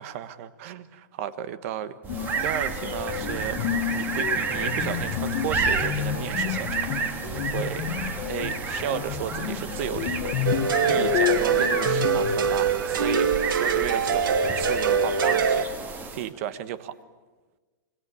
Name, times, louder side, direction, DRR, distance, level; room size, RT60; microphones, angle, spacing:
voice 1, 0.0-6.9 7.2-7.9 8.3-15.7 16.1-16.9, right 10 dB, 40° right, 14 dB, 1.3 m, -34 dB
sound 1, 2.0-16.3, right 4 dB, 15° right, 1.9 m, -30 dB
sound 2, 2.1-12.4, left 11 dB, 35° left, 1.5 m, -30 dB
sound 3, 10.4-15.6, right 6 dB, 80° right, 2.6 m, -24 dB
27.0 x 22.0 x 8.5 m, 1.3 s
supercardioid pair, 165°, 11 cm